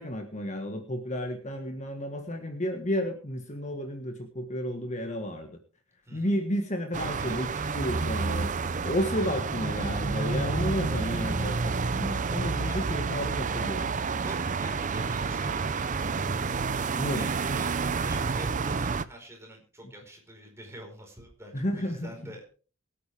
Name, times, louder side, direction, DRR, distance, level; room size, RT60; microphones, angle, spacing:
voice 1, 0.0-5.5 6.1-13.9 17.0-17.3 21.5-22.1, equal, 35° left, 4 dB, 1.6 m, -32 dB
sound 1, 6.9-19.0, right 4 dB, 35° right, 0.6 m, -29 dB
voice 2, 7.2-7.8 9.2-9.3 12.5-12.9 14.2-16.3 16.9-22.4, right 1 dB, 15° right, 1 dB, 4.8 m, -47 dB
23.0 x 9.0 x 3.5 m, 0.38 s
head